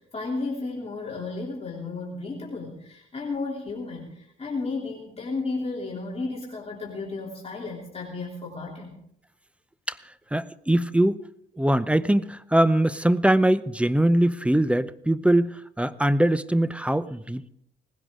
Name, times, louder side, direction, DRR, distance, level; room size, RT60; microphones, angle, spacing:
voice 1, 0.0-9.0, left 3 dB, 30° left, -3 dB, 3.1 m, -33 dB
voice 2, 10.3-11.2 11.6-17.5, right 1 dB, 5° right, 15 dB, 0.7 m, -22 dB
19.0 x 16.0 x 3.7 m, 0.72 s
cardioid pair, 90°, 20 cm